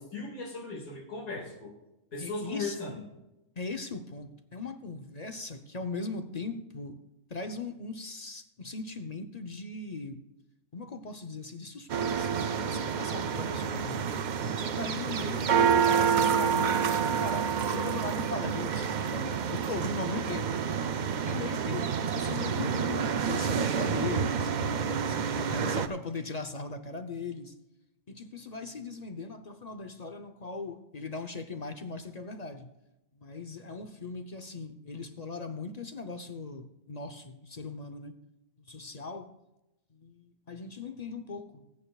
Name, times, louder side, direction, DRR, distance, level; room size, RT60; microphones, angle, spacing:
voice 1, 0.0-1.7 2.1-3.0 14.8-14.9 15.2-15.9, left 3 dB, 80° left, -1 dB, 2.7 m, -38 dB
voice 2, 2.2-2.8 3.6-7.0 7.3-10.2 10.7-14.1 14.6-20.5 21.2-27.5 28.1-32.7 33.1-38.2 38.7-39.3 39.9-41.6, left 3 dB, 40° left, 8 dB, 0.7 m, -39 dB
sound 1, 11.9-25.9, right 7 dB, 65° right, 0.4 m, -28 dB
20.5 x 9.1 x 2.4 m, 0.94 s
omnidirectional pair, 1.5 m